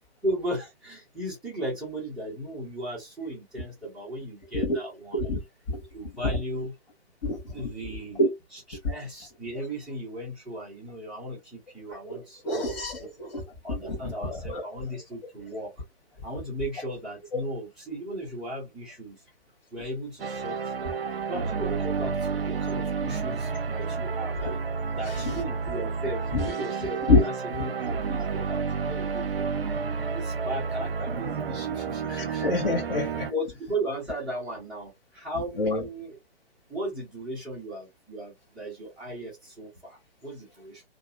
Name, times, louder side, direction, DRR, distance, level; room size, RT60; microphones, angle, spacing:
voice 1, 0.2-5.2 5.9-6.7 7.5-8.2 8.5-13.1 13.6-15.7 16.2-19.2 19.7-29.5 30.1-32.5 33.3-36.2 36.7-40.8, right 1 dB, ahead, 0.5 m, -36 dB
voice 2, 7.2-7.7 8.2-8.3 8.8-8.9 12.1-13.4 13.7-14.6 17.3-17.4 25.0-25.3 26.3-26.5 27.1-27.3 32.1-33.3 35.6-35.8, left 2 dB, 45° left, 1.0 m, -26 dB
sound 1, 20.2-33.3, right 5 dB, 65° right, 0.6 m, -30 dB
2.7 x 2.4 x 2.4 m
figure-of-eight pair, 135°, 32 cm